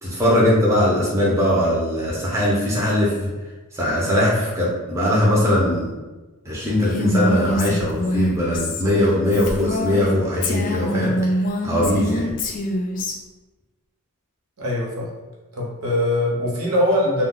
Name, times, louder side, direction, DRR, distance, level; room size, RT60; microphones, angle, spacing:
voice 1, 0.0-3.3 3.7-5.9 6.4-11.1 11.6-12.3, left 1 dB, 15° right, -6 dB, 0.6 m, -20 dB
Female speech woman speaking, 6.6-10.1 10.4-13.1, equal, 40° left, 0.3 m, -24 dB
voice 2, 14.6-15.1 15.5-17.3, left 1 dB, 75° right, -3 dB, 0.8 m, -22 dB
2.2 x 2.1 x 3.7 m, 1.2 s
head